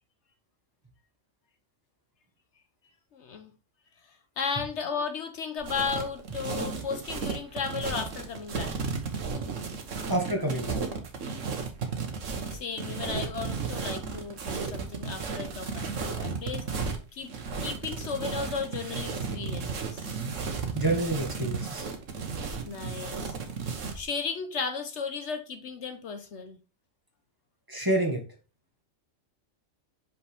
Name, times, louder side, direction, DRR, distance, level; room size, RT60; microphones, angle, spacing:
voice 1, 3.1-3.5 4.4-8.8 12.5-16.7 17.1-17.3 17.6-20.1 22.6-23.4 23.9-26.6, left 5 dB, 65° left, 1.1 m, -35 dB
sound 1, 5.6-24.0, right 5 dB, 75° right, 1.5 m, -34 dB
voice 2, 10.1-10.8 20.7-21.8 27.7-28.2, right 1 dB, 15° right, 1.6 m, -28 dB
6.0 x 5.4 x 3.4 m
omnidirectional pair, 1.3 m